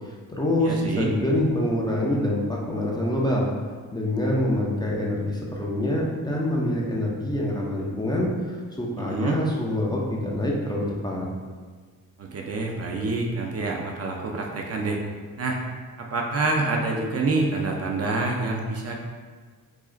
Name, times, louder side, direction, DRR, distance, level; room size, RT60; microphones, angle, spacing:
voice 1, 0.0-3.5 3.9-11.3, left 1 dB, 10° left, -4 dB, 0.5 m, -26 dB
voice 2, 0.6-1.1 9.0-9.4 12.2-15.0 15.4-15.6 16.0-18.9, right 3 dB, 45° right, 0 dB, 0.5 m, -27 dB
4.8 x 4.1 x 2.5 m, 1.5 s
wide cardioid pair, 160°, 35 cm